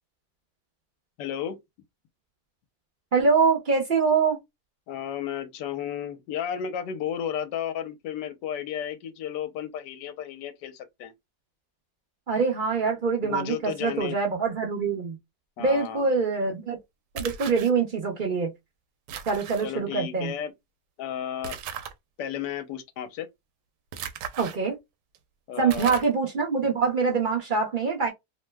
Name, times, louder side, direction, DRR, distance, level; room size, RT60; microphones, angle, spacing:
voice 1, 1.2-1.6 4.9-11.1 13.2-14.2 15.6-16.1 19.6-20.5 21.0-21.6 22.2-23.3 25.5-26.0, left 9 dB, 85° left, 1.2 m, -33 dB
voice 2, 3.1-4.4 12.3-15.2 15.6-16.8 17.1-18.5 19.3-20.3 24.4-24.8 25.6-28.1, right 5 dB, 45° right, 0.6 m, -24 dB
sound 1, 17.2-17.7 19.1-19.6 21.4-21.9 23.9-24.6 25.1-25.2 25.7-26.2, right 8 dB, 85° right, 1.2 m, -37 dB
3.0 x 2.1 x 3.3 m
omnidirectional pair, 1.8 m